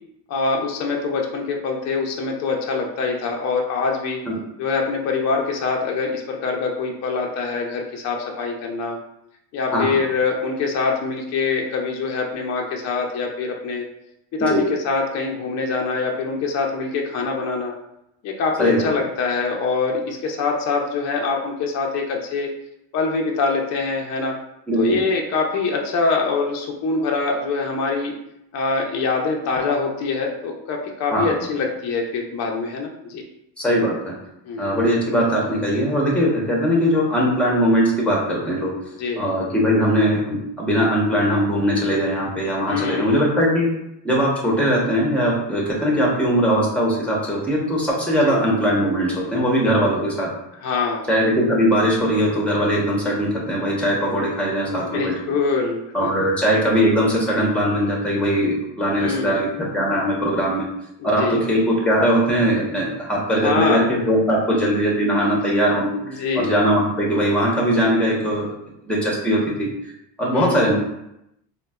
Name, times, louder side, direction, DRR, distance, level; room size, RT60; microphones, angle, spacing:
voice 1, 0.3-4.2 4.6-9.0 9.5-13.8 14.3-17.7 18.2-22.5 22.9-24.4 24.7-28.1 28.5-33.2 34.5-34.7 39.0-39.2 42.7-43.2 48.2-48.4 50.6-51.1 54.7-56.1 59.0-59.3 61.0-61.4 63.4-63.9 66.1-66.5 70.3-70.7, left 4 dB, 40° left, 0 dB, 0.4 m, -24 dB
voice 2, 24.7-25.0 31.1-31.3 33.6-34.1 34.6-38.7 39.2-43.7 44.0-50.3 51.1-55.1 55.9-60.6 61.0-68.5 68.8-69.7 70.2-70.7, equal, 5° left, -3 dB, 0.8 m, -20 dB
3.8 x 2.1 x 2.3 m, 0.82 s
cardioid pair, 125°, 47 cm